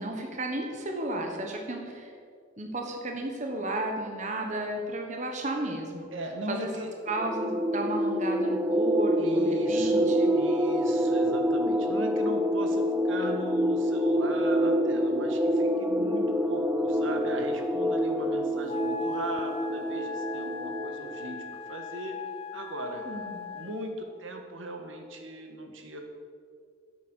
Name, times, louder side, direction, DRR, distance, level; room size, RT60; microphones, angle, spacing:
voice 1, 0.0-2.1 2.6-6.1 6.5-6.7 7.1-10.3 16.0-16.3 23.1-23.6, right 1 dB, 35° right, 2 dB, 1.3 m, -33 dB
voice 2, 6.1-6.9 9.2-22.2 22.5-23.1 23.5-26.0, right 1 dB, 75° right, 4 dB, 1.6 m, -38 dB
sound 1, 7.1-21.4, equal, 5° right, 0.4 m, -27 dB
Wind instrument woodwind instrument, 18.7-23.9, left 5 dB, 30° left, 0.7 m, -39 dB
12.0 x 8.5 x 6.4 m, 2.2 s
head